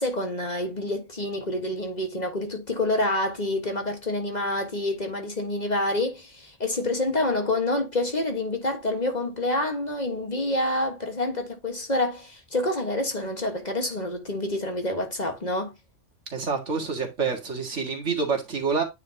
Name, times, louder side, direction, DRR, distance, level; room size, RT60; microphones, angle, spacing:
voice 1, 0.0-15.7, left 1 dB, 35° left, 1.6 m, -27 dB
voice 2, 16.3-18.8, right 5 dB, 70° right, 2.2 m, -27 dB
9.4 x 4.8 x 2.8 m
omnidirectional pair, 1.3 m